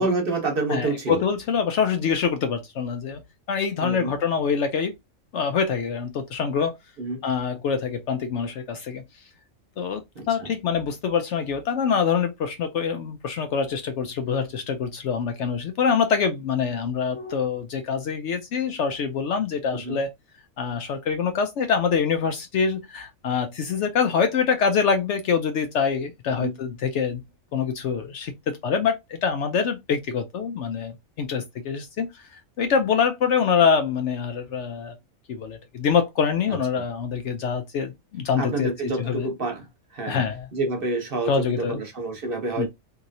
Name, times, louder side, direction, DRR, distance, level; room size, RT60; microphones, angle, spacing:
voice 1, 0.0-1.2 3.8-4.1 7.0-7.2 10.1-10.5 19.7-20.0 26.3-26.5 36.5-36.6 38.4-39.7 39.9-40.2 40.5-42.7, right 2 dB, 45° right, 1.0 m, -28 dB
voice 2, 0.7-3.2 3.5-4.9 5.3-6.7 7.2-9.0 9.8-20.1 20.6-27.2 27.5-34.9 35.3-38.7 39.0-39.3 40.1-40.5 41.3-41.8 42.6-42.7, left 6 dB, 65° left, 0.8 m, -25 dB
2.9 x 2.7 x 2.5 m
omnidirectional pair, 1.4 m